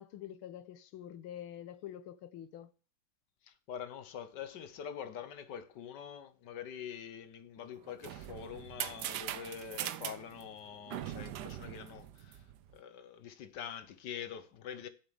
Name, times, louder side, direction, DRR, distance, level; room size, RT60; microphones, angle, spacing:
voice 1, 0.0-2.7, left 11 dB, 75° left, 1.6 m, -46 dB
voice 2, 3.4-12.4 12.7-14.9, left 8 dB, 60° left, 1.3 m, -45 dB
sound 1, 7.7-12.7, right 11 dB, 70° right, 1.0 m, -41 dB
8.2 x 6.7 x 6.4 m
omnidirectional pair, 2.4 m